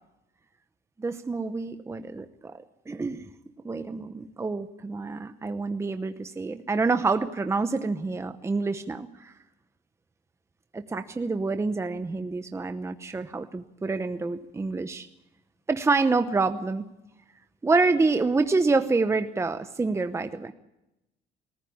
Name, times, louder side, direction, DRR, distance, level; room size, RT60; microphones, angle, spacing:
voice 1, 1.0-3.3 3.6-9.3 10.7-15.1 15.7-16.9 17.6-20.5, right 3 dB, 15° right, 9 dB, 0.9 m, -27 dB
20.5 x 15.0 x 8.6 m, 0.90 s
cardioid pair, 110°, 17 cm